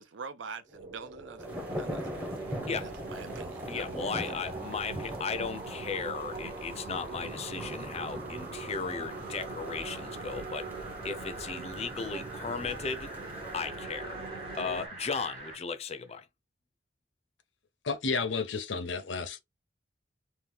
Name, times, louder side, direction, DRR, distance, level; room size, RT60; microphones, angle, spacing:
voice 1, 0.0-2.3 2.8-4.3, right 5 dB, 80° right, 0.5 m, -45 dB
sound 1, 0.7-15.6 16.1-16.2, right 2 dB, 30° right, 1.2 m, -46 dB
sound 2, 1.4-13.6, equal, 10° right, 0.7 m, -43 dB
sound 3, 1.5-14.9, right 3 dB, 55° right, 1.1 m, -42 dB
voice 2, 3.7-10.7 11.0-13.1 13.5-14.2 14.6-16.3, left 5 dB, 35° left, 0.5 m, -36 dB
voice 3, 17.8-19.4, left 4 dB, 80° left, 0.6 m, -31 dB
2.8 x 2.2 x 3.4 m
head